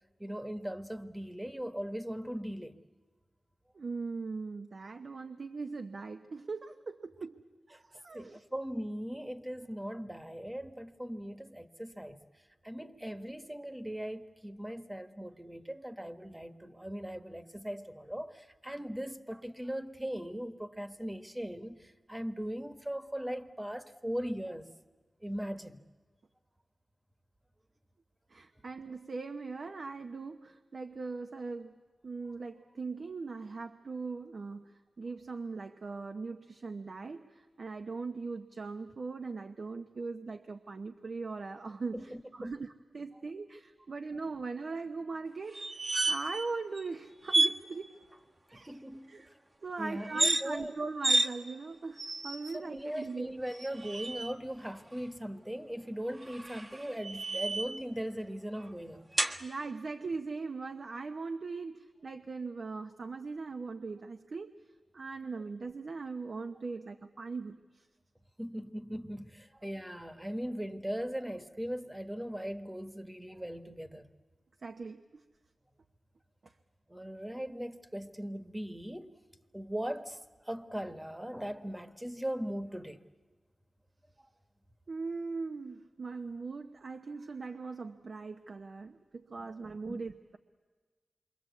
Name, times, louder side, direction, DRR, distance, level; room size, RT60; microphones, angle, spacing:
voice 1, 0.2-2.7 8.1-12.2 12.6-24.7 25.2-25.8 41.9-42.6 48.5-49.2 49.8-50.8 52.5-59.1 68.4-74.1 76.9-79.1 79.5-83.0 84.2-84.3 89.4-90.0, equal, 10° right, 1.4 m, -39 dB
voice 2, 3.7-7.4 7.7-8.4 28.3-31.7 32.0-34.6 35.0-45.6 46.1-48.0 48.5-48.8 49.1-49.3 49.6-53.4 59.4-64.5 64.9-67.8 74.6-75.2 84.9-90.4, right 4 dB, 60° right, 1.0 m, -40 dB
sound 1, 45.5-46.5 46.7-46.9 47.3-47.6 50.0-50.4 51.0-51.3 52.0-52.6 53.5-54.3 56.2-57.8 59.2-59.4, right 2 dB, 35° right, 1.3 m, -30 dB
27.5 x 24.0 x 8.3 m
cardioid pair, 65°, 0 cm